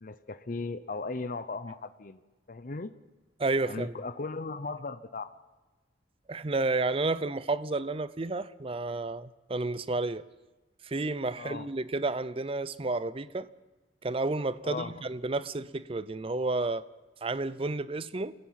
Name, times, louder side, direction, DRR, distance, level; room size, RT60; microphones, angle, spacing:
voice 1, 0.0-2.2 2.5-2.9 3.6-5.3 11.4-11.7 14.6-14.9, left 3 dB, 45° left, 0.7 m, -37 dB
voice 2, 3.4-3.9 6.3-10.2 10.8-13.5 14.0-16.9 17.2-18.3, right 3 dB, 30° right, 0.6 m, -31 dB
29.0 x 15.5 x 5.8 m
head